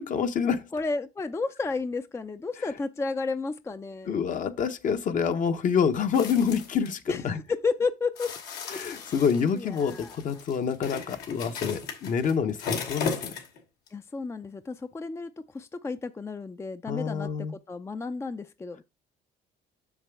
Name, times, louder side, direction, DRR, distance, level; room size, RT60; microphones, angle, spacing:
voice 1, 0.0-0.7 4.1-7.4 8.7-13.3 16.9-17.5, left 6 dB, 50° left, 1.0 m, -27 dB
voice 2, 0.7-4.2 7.1-8.3 8.6-10.2 13.9-18.8, left 4 dB, 15° left, 0.4 m, -32 dB
sound 1, 6.1-6.9 8.2-13.6 13.9-14.0, left 5 dB, 85° left, 2.5 m, -36 dB
7.2 x 6.8 x 3.4 m
cardioid pair, 110°, 17 cm